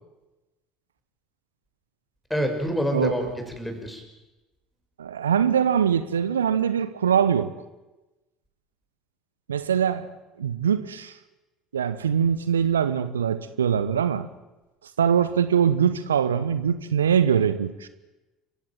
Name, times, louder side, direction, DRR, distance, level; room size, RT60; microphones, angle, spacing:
voice 1, 2.3-4.0, equal, 5° left, 6.3 m, -27 dB
voice 2, 5.0-7.5 9.5-10.1 10.4-11.2 11.7-14.3 15.0-17.9, right 8 dB, 80° right, 0.9 m, -22 dB
28.5 x 16.0 x 9.1 m
figure-of-eight pair, 65°, 0 cm